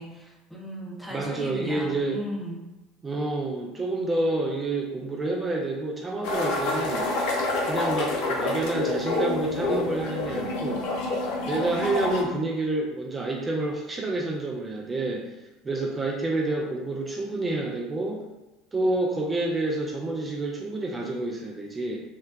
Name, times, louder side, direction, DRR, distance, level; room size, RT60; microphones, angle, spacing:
voice 1, 0.0-2.6, equal, 5° left, -2 dB, 0.8 m, -37 dB
voice 2, 1.1-2.2 3.0-7.1 7.6-10.8 11.5-15.3 15.6-18.2 18.7-22.0, right 2 dB, 20° right, -1 dB, 0.4 m, -28 dB
sound 1, 6.2-12.2, left 2 dB, 65° left, 0.5 m, -28 dB
3.7 x 2.1 x 2.3 m, 1.1 s
hypercardioid pair, 70°, 0 cm